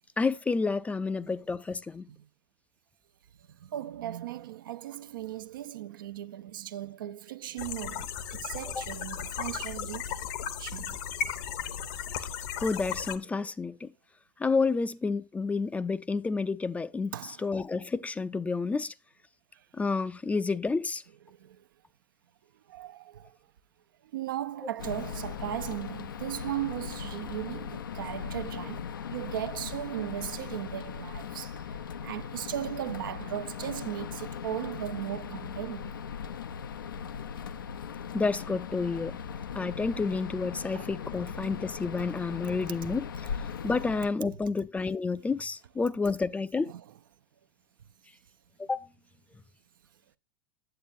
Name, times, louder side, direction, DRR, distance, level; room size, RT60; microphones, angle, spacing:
voice 1, 0.2-2.1 8.8-8.9 12.6-13.9 14.4-17.1 17.4-18.9 19.8-21.0 38.1-39.1 39.5-43.1 43.6-46.7 48.6-48.9, left 4 dB, 10° left, 0.4 m, -30 dB
voice 2, 3.6-8.1 8.3-10.1 10.6-11.0 17.1-17.5 21.3-21.6 22.7-23.3 24.1-31.6 32.0-35.9 40.8-40.9 46.7-46.9, right 12 dB, 75° right, 0.5 m, -37 dB
sound 1, 7.6-13.2, left 8 dB, 60° left, 0.9 m, -36 dB
sound 2, 24.8-44.1, left 7 dB, 85° left, 0.5 m, -39 dB
8.7 x 7.9 x 2.6 m
hypercardioid pair, 95°, 11 cm